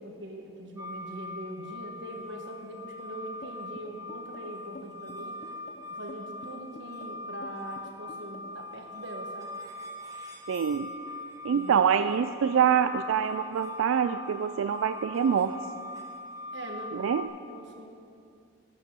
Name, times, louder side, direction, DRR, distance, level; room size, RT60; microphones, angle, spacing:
voice 1, 0.0-5.4 5.9-9.5 11.5-12.1 16.5-17.1 17.5-17.9, right 1 dB, 60° right, 2 dB, 1.4 m, -42 dB
sound 1, 0.8-17.3, left 2 dB, 15° right, 1.1 m, -42 dB
sound 2, 3.4-8.7, left 2 dB, 35° left, 0.6 m, -48 dB
voice 2, 10.5-10.9 11.4-15.6 16.9-17.3, right 7 dB, 75° right, 10 dB, 0.3 m, -25 dB
12.5 x 6.2 x 7.6 m, 2.4 s
head